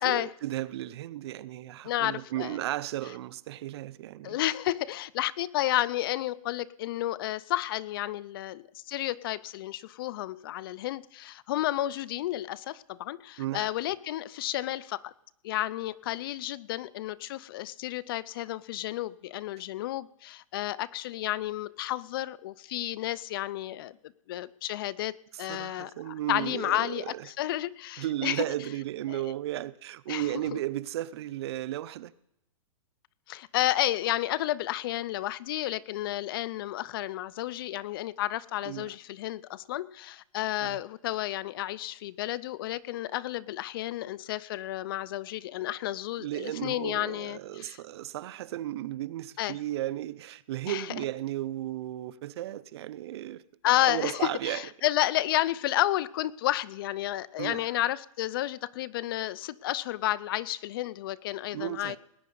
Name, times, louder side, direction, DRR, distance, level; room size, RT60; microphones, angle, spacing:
voice 1, 0.0-4.4 13.4-13.7 25.3-27.3 28.0-32.1 38.6-38.9 40.6-40.8 46.2-53.4 53.8-54.6 57.4-57.7 61.5-62.0, right 13 dB, 50° right, 0.6 m, -34 dB
voice 2, 1.8-2.6 4.2-15.1 15.4-24.0 24.3-28.4 29.1-29.2 30.1-30.6 33.3-47.8 49.4-49.6 50.7-51.0 53.6-62.0, left 14 dB, 40° left, 0.4 m, -31 dB
19.0 x 9.4 x 5.3 m
hypercardioid pair, 155°, 18 cm